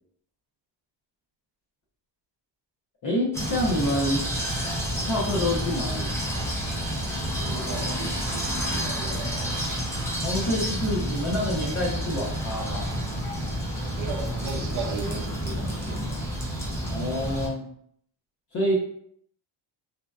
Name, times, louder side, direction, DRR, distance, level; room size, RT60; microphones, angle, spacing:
voice 1, 3.0-4.2 5.0-6.2 10.2-12.9 16.9-17.7 18.5-18.7, left 1 dB, 45° left, -5 dB, 0.7 m, -27 dB
sound 1, 3.3-17.5, equal, 5° left, 0.4 m, -29 dB
voice 2, 7.4-9.5 10.5-10.6 13.9-16.2, right 4 dB, 45° right, 1 dB, 0.6 m, -36 dB
2.7 x 2.1 x 2.3 m, 0.67 s
cardioid pair, 155°, 45 cm